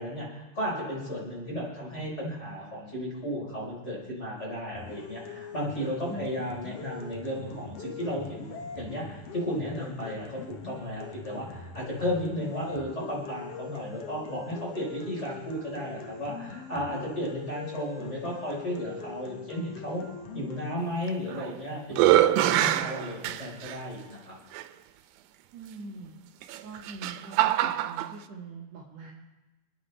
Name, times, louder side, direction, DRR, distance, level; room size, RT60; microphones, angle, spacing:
voice 1, 0.0-20.0 20.3-24.4, equal, 20° left, -4 dB, 4.2 m, -34 dB
sound 1, 4.7-20.7, left 5 dB, 70° left, 1.4 m, -42 dB
sound 2, 21.1-21.5 21.9-23.8 24.5-24.6 26.4-28.1, right 14 dB, 90° right, 2.5 m, -24 dB
voice 2, 25.5-26.1 26.6-29.1, right 3 dB, 50° right, -6 dB, 2.8 m, -43 dB
28.5 x 9.6 x 3.3 m, 1.1 s
omnidirectional pair, 4.1 m